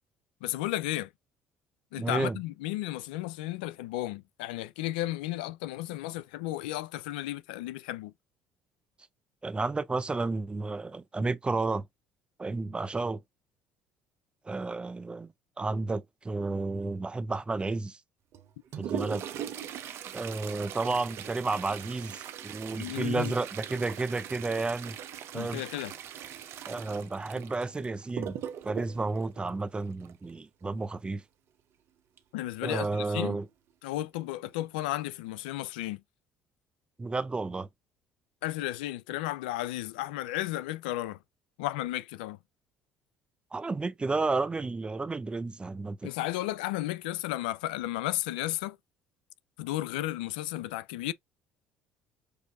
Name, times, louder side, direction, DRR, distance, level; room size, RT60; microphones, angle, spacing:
voice 1, 0.4-1.1 1.9-8.1 22.8-23.3 25.3-25.9 32.3-33.4 33.8-36.0 38.4-41.2 41.6-42.4 46.0-48.8 49.6-51.1, left 16 dB, 85° left, 0.4 m, -33 dB
voice 2, 2.0-2.4 9.4-11.8 12.4-13.2 14.5-15.3 15.6-18.0 18.7-19.3 20.1-25.0 25.3-25.6 26.7-28.4 28.6-31.2 32.6-33.5 37.0-37.7 43.5-46.1, right 3 dB, 20° right, 0.5 m, -32 dB
Toilet flush, 18.3-30.3 32.2-32.3 32.6-32.7 33.5-33.6 34.2-34.5 34.9-35.1, right 9 dB, 60° right, 0.7 m, -40 dB
6.6 x 2.6 x 2.3 m
hypercardioid pair, 70°, 5 cm